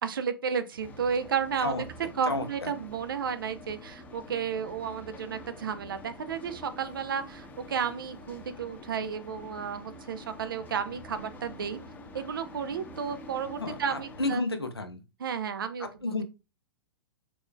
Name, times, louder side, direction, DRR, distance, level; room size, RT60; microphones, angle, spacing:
voice 1, 0.0-1.8 2.2-11.8 12.1-14.4 15.2-16.2, right 7 dB, 60° right, 0.7 m, -32 dB
sound 1, 0.8-14.4, left 1 dB, 15° left, 0.9 m, -47 dB
voice 2, 2.3-2.7 13.6-15.0 15.8-16.2, left 2 dB, 80° left, 0.9 m, -32 dB
4.3 x 4.3 x 2.2 m
figure-of-eight pair, 105°, 13 cm